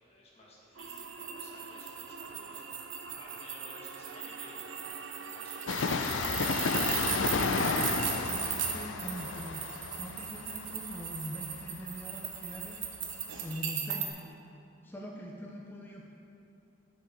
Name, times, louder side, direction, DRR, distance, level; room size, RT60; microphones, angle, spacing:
voice 1, 0.1-2.6 3.0-6.3, left 1 dB, 35° left, -5 dB, 1.7 m, -55 dB
sound 1, 0.7-6.2, right 5 dB, 75° right, 0.4 m, -47 dB
sound 2, 0.8-14.1, right 8 dB, 90° right, 0.8 m, -37 dB
Train, 5.7-13.1 13.4-13.5, left 4 dB, 85° left, 0.5 m, -32 dB
voice 2, 8.2-9.6 10.0-12.8 13.4-14.2 14.8-16.0, equal, 10° left, -2 dB, 0.6 m, -42 dB
10.0 x 5.3 x 4.4 m, 2.8 s
head